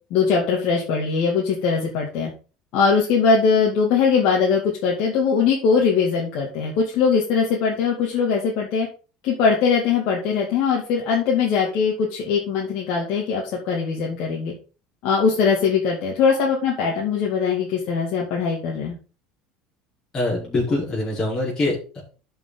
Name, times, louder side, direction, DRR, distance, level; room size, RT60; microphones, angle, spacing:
voice 1, 0.1-2.3 2.7-8.9 9.2-14.5 15.0-19.0, left 5 dB, 60° left, -2 dB, 2.3 m, -21 dB
voice 2, 20.1-22.0, left 2 dB, 30° left, -5 dB, 5.2 m, -24 dB
11.5 x 5.4 x 4.1 m, 0.35 s
supercardioid pair, 120°, 2 cm